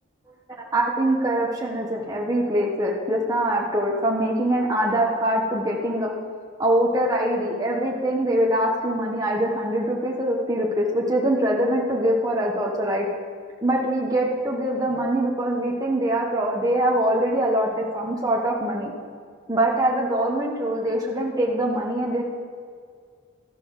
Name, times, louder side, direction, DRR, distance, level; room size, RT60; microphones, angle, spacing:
voice 1, 0.7-6.1 6.6-13.1 13.6-18.9 19.5-22.2, right 1 dB, 15° right, -2 dB, 1.0 m, -23 dB
13.5 x 5.4 x 5.5 m, 2.1 s
head